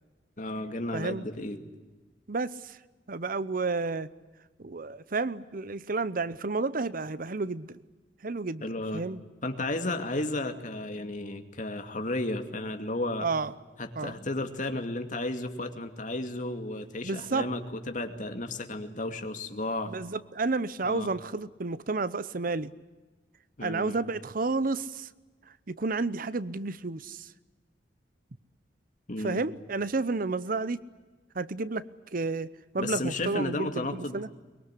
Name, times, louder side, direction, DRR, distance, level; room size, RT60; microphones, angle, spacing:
voice 1, 0.4-1.6 8.6-9.0 9.4-13.3 13.8-19.9 20.8-21.1 23.6-24.0 29.1-29.4 32.8-34.2, left 2 dB, 45° left, 6 dB, 2.5 m, -33 dB
voice 2, 0.9-1.2 2.3-2.8 3.1-4.1 4.6-7.8 8.2-8.7 8.9-9.2 13.2-13.5 14.0-14.1 17.0-17.5 19.9-22.7 23.6-25.1 25.7-27.3 29.2-30.8 31.3-31.9 32.1-32.5 32.7-34.3, right 3 dB, 50° right, 16 dB, 0.8 m, -31 dB
23.5 x 22.0 x 10.0 m, 1.2 s
head